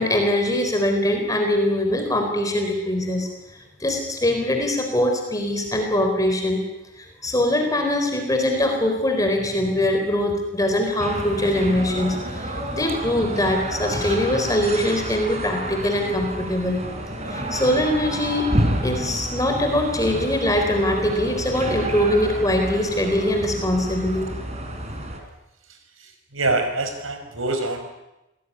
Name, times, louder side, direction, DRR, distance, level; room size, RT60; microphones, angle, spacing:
voice 1, 0.0-3.3 3.8-6.6 7.0-16.8 17.3-18.5 18.8-24.3, left 1 dB, 15° left, 4 dB, 4.1 m, -22 dB
sound 1, 11.0-25.2, right 1 dB, 35° right, 4.1 m, -30 dB
voice 2, 26.0-27.9, right 2 dB, 90° right, 6 dB, 5.1 m, -25 dB
26.5 x 19.0 x 9.8 m, 0.95 s
head